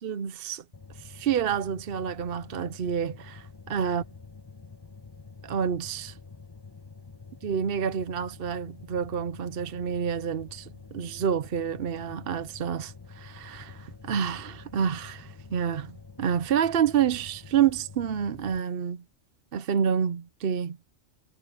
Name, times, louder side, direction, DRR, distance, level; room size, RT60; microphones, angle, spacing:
voice 1, 0.0-0.6 0.9-4.0 5.4-6.2 7.4-19.0 19.5-20.8, right 8 dB, 55° right, 0.8 m, -28 dB
sound 1, 0.7-18.6, left 4 dB, 20° left, 1.0 m, -47 dB
omnidirectional pair, 1.3 m